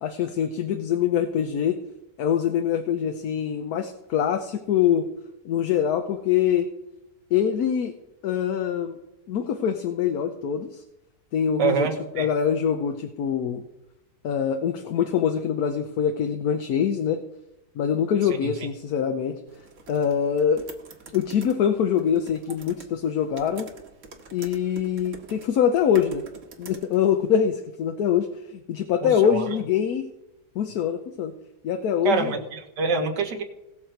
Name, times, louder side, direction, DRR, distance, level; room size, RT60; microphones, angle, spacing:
voice 1, 0.0-1.8 2.2-5.1 5.4-6.7 7.3-7.9 8.2-9.0 9.3-10.8 11.3-11.9 12.1-13.6 14.2-17.2 17.7-19.4 19.9-20.7 21.1-23.7 24.3-26.2 26.6-30.1 30.5-31.3 31.6-32.4, left 8 dB, 70° left, 7 dB, 1.2 m, -24 dB
voice 2, 11.6-12.3 29.0-29.5 32.0-33.4, right 5 dB, 90° right, 3 dB, 1.9 m, -26 dB
sound 1, 19.5-27.4, right 4 dB, 50° right, 1.5 m, -46 dB
18.0 x 6.4 x 4.5 m, 0.95 s
omnidirectional pair, 1.8 m